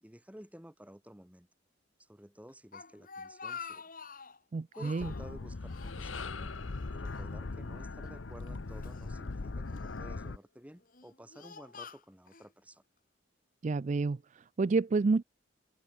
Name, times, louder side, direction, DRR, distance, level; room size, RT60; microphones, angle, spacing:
voice 1, 0.0-1.5 2.0-3.9 4.7-6.5 6.9-12.8, equal, 5° right, 1.7 m, -53 dB
Speech, 2.5-4.4 4.7-5.3 5.7-6.8 7.1-7.2 8.0-9.0 9.7-10.2 10.8-12.5, left 5 dB, 45° left, 2.7 m, -47 dB
voice 2, 4.5-5.1 13.6-15.2, right 3 dB, 35° right, 0.4 m, -29 dB
sound 1, 5.0-10.4, left 3 dB, 70° left, 0.8 m, -40 dB
sound 2, 5.4-9.9, left 5 dB, 85° left, 2.4 m, -48 dB
head